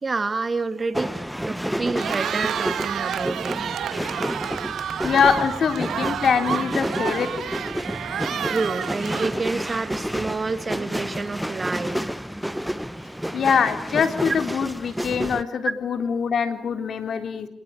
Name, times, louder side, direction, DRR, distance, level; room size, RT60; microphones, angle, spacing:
voice 1, 0.0-3.6 8.5-12.0 13.0-13.3, right 3 dB, 30° right, 11 dB, 2.3 m, -28 dB
sound 1, 0.9-15.4, equal, ahead, 1.1 m, -30 dB
Cheering, 1.8-10.1, right 9 dB, 65° right, 1.8 m, -30 dB
voice 2, 5.0-7.5 13.3-17.5, left 6 dB, 55° left, 7 dB, 3.8 m, -23 dB
27.5 x 21.5 x 9.1 m, 0.67 s
cardioid pair, 90°, 0 cm